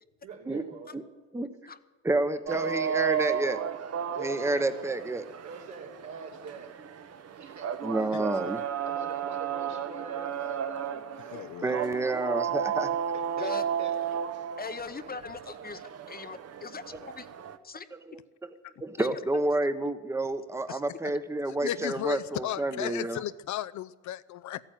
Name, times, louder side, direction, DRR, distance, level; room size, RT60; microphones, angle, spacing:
voice 1, 0.2-1.0 2.5-3.0 4.1-4.7 5.4-6.7 7.4-7.7 8.8-11.4 13.1-13.5 13.8-13.9, right 5 dB, 70° right, 1 dB, 3.1 m, -43 dB
voice 2, 1.3-1.7 2.0-3.6 4.2-5.3 7.8-8.6 11.3-12.9 17.9-18.5 18.8-23.2, right 2 dB, 10° right, 11 dB, 0.9 m, -29 dB
sound 1, 2.5-17.6, right 8 dB, 55° right, 1.0 m, -34 dB
voice 3, 11.3-11.9 18.6-18.7 20.7-20.8 21.5-24.6, left 12 dB, 70° left, 14 dB, 0.6 m, -35 dB
voice 4, 14.6-17.3 17.6-17.9 19.0-19.1 20.7-20.8, left 5 dB, 30° left, 12 dB, 0.8 m, -40 dB
14.0 x 9.0 x 9.1 m, 1.2 s
cardioid pair, 90°, 30 cm